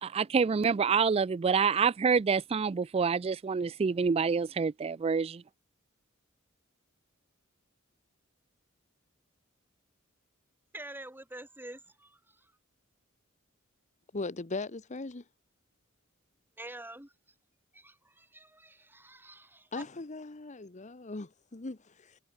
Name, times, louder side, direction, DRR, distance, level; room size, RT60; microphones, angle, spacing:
voice 1, 0.0-5.4, right 5 dB, 30° right, 0.3 m, -27 dB
voice 2, 10.7-12.5 16.6-17.1 17.7-19.7, right 1 dB, 10° right, 5.2 m, -47 dB
voice 3, 14.1-15.2 19.7-22.2, left 3 dB, 35° left, 1.0 m, -39 dB
head